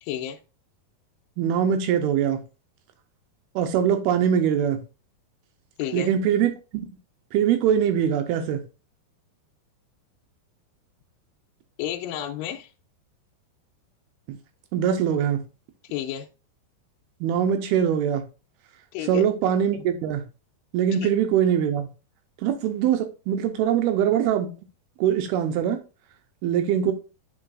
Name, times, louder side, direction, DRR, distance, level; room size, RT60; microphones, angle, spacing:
voice 1, 0.0-0.4 5.8-6.1 11.8-12.7 15.9-16.3 18.9-19.2 21.0-21.1, left 10 dB, 80° left, 2.7 m, -31 dB
voice 2, 1.4-2.4 3.6-4.8 5.9-6.9 7.3-8.6 14.7-15.4 17.2-18.2 19.0-20.2 20.7-21.9 22.4-24.5 25.0-25.8 26.4-26.9, right 9 dB, 80° right, 2.5 m, -22 dB
8.7 x 5.3 x 2.5 m
omnidirectional pair, 4.9 m